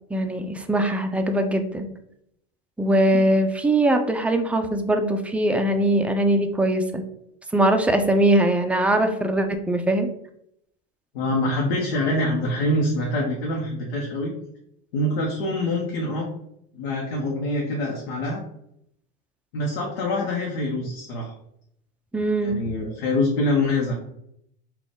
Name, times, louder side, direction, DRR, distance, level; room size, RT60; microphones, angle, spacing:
voice 1, 0.1-1.9 2.8-7.0 7.5-10.1 22.1-22.5, right 1 dB, 5° right, 5 dB, 0.3 m, -21 dB
voice 2, 11.1-14.3 14.9-16.3 16.7-18.4 19.5-21.3 22.4-23.9, left 1 dB, 80° left, -1 dB, 0.9 m, -25 dB
3.9 x 2.3 x 3.5 m, 0.75 s
hypercardioid pair, 100°, 31 cm